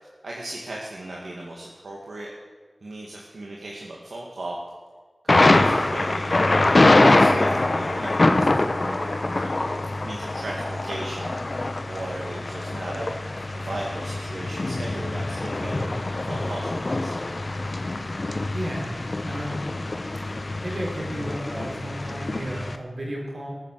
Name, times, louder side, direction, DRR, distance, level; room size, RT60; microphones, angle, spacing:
voice 1, 0.0-2.3 2.8-4.6 5.2-9.7 10.0-13.2 13.5-15.9 16.2-17.4, right 1 dB, 85° right, -3 dB, 2.1 m, -37 dB
Thunder, 5.3-22.8, left 2 dB, 50° left, 1.2 m, -24 dB
voice 2, 18.5-19.7 20.3-23.6, equal, 65° right, -2 dB, 5.0 m, -33 dB
19.0 x 7.7 x 7.7 m, 1.5 s
wide cardioid pair, 45°, 0 cm